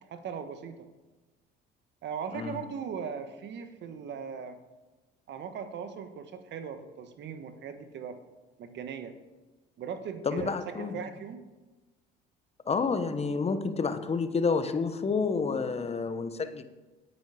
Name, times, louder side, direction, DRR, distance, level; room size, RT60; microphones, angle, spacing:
voice 1, 0.1-0.9 2.0-4.6 5.3-8.2 8.6-9.1 9.8-11.5, right 6 dB, 60° right, 9 dB, 1.4 m, -39 dB
voice 2, 10.2-10.9 12.7-16.6, left 4 dB, 30° left, 10 dB, 1.0 m, -29 dB
9.3 x 9.2 x 5.0 m, 1.2 s
supercardioid pair, 80°, 21 cm